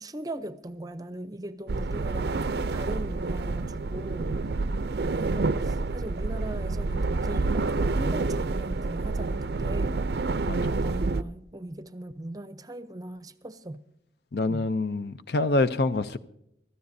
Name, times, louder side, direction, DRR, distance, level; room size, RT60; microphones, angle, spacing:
voice 1, 0.0-4.4 4.7-10.0 10.6-13.8 14.5-14.7, right 1 dB, 20° right, 0.6 m, -39 dB
sound 1, 1.7-11.2, right 3 dB, 60° right, 0.5 m, -28 dB
voice 2, 14.3-16.2, left 2 dB, 60° left, 0.6 m, -26 dB
25.0 x 13.5 x 2.7 m
head